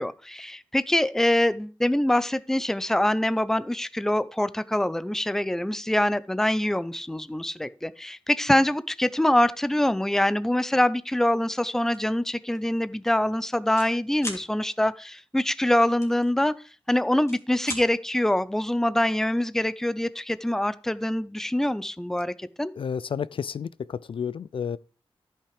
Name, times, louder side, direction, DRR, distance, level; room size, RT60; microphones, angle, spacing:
voice 1, 0.0-16.5 16.9-22.7, left 1 dB, 5° left, 0.5 m, -24 dB
sound 1, 11.9-12.1 12.5-12.7 13.0-13.9 14.2-14.4 16.0-16.8 17.1-17.8, left 1 dB, 30° left, 2.7 m, -37 dB
voice 2, 22.8-24.8, left 7 dB, 65° left, 0.4 m, -31 dB
13.5 x 5.9 x 4.8 m
wide cardioid pair, 110°, 10 cm